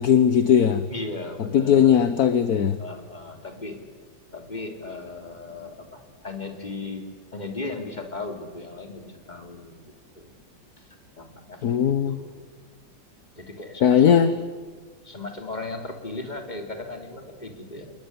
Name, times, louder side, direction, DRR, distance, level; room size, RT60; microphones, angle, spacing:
voice 1, 0.0-0.9 1.5-2.8 11.6-12.2 13.8-14.3, left 8 dB, 55° left, 12 dB, 1.4 m, -18 dB
voice 2, 0.9-2.0 2.8-3.8 4.3-9.8 10.1-10.3 10.8-10.9 11.2-12.5 13.3-14.3 15.0-17.9, left 3 dB, 20° left, 4 dB, 3.3 m, -37 dB
27.5 x 21.0 x 9.8 m, 1.5 s
omnidirectional pair, 2.2 m